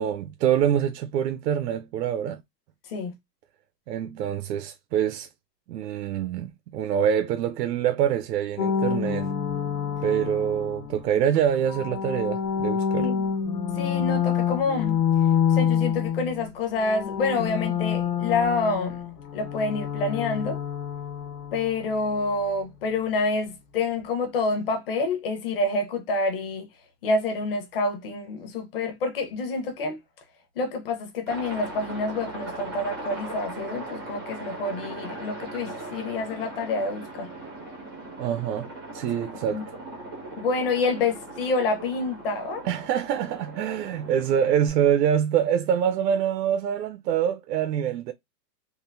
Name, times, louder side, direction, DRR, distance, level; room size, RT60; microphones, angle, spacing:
voice 1, 0.0-2.4 3.9-5.3 5.7-9.3 10.0-13.1 38.2-39.6 42.6-48.1, right 9 dB, 75° right, 0.6 m, -25 dB
sound 1, 8.6-11.0 11.6-16.5 16.8-21.7, left 8 dB, 75° left, 1.3 m, -27 dB
voice 2, 13.0-13.3 13.8-15.0 15.5-19.0 19.3-20.6 21.5-26.7 27.0-30.0 30.6-37.3 39.5-39.6 40.4-42.6, left 3 dB, 35° left, 0.8 m, -27 dB
Aircraft, 31.3-44.7, right 2 dB, 15° right, 0.4 m, -39 dB
3.8 x 2.5 x 2.5 m
supercardioid pair, 175°, 50 cm